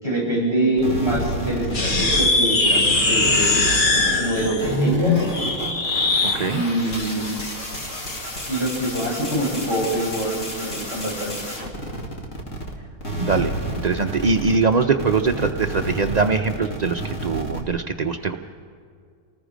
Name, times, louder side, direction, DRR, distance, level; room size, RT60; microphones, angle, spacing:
voice 1, 0.0-3.6 4.2-5.3 6.5-7.3 8.5-11.3, right 1 dB, 15° left, -4 dB, 8.1 m, -24 dB
sound 1, 0.8-12.7 13.0-17.6, right 1 dB, 55° left, 2.6 m, -30 dB
sound 2, 1.7-6.4, left 2 dB, 35° left, 1.4 m, -20 dB
voice 2, 6.2-6.6 13.2-13.5 13.8-18.4, right 4 dB, 60° right, 5 dB, 0.4 m, -22 dB
28.5 x 19.5 x 5.1 m, 2.2 s
omnidirectional pair, 1.6 m